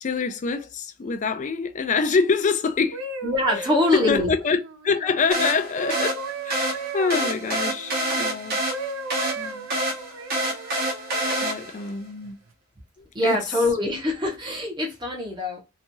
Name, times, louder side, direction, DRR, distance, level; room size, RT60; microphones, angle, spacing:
voice 1, 0.0-3.0 3.6-8.6 9.4-9.7 11.4-12.4 13.0-13.4, left 4 dB, 35° left, 0.4 m, -26 dB
sound 1, 2.7-8.3 8.7-11.6 12.2-12.5, right 2 dB, 70° right, 0.5 m, -36 dB
voice 2, 3.2-4.3 13.1-15.6, left 1 dB, 20° right, 0.9 m, -24 dB
sound 2, 5.3-11.9, right 1 dB, 50° right, 1.1 m, -27 dB
2.9 x 2.4 x 2.6 m
head